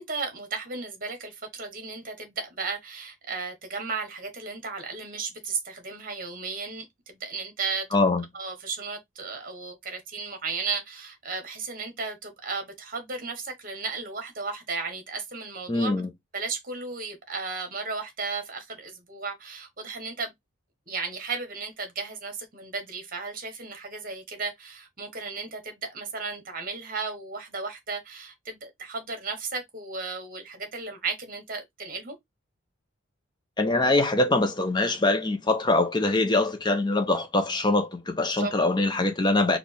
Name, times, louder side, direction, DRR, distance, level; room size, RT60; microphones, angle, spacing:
voice 1, 0.0-7.9 8.3-15.9 16.3-20.3 20.9-32.2 38.3-38.5, right 4 dB, 45° right, 1.2 m, -34 dB
voice 2, 7.9-8.2 15.7-16.1 33.6-39.6, left 2 dB, 20° left, 0.6 m, -23 dB
4.2 x 2.4 x 3.4 m
head